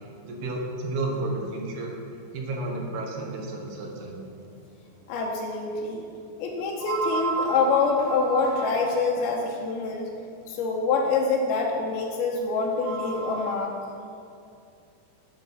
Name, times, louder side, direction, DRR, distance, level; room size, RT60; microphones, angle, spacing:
voice 1, 0.2-1.9 2.3-4.2, right 2 dB, 70° right, 0 dB, 2.9 m, -31 dB
Electronic telephone ring distant in house, 5.0-5.1 6.8-9.2 11.0-11.1 12.7-13.6, right 4 dB, 90° right, 2.1 m, -32 dB
voice 2, 5.1-6.0 6.4-10.1 10.5-13.7, left 4 dB, 80° left, -1 dB, 2.3 m, -25 dB
10.0 x 6.5 x 5.4 m, 2.4 s
omnidirectional pair, 5.2 m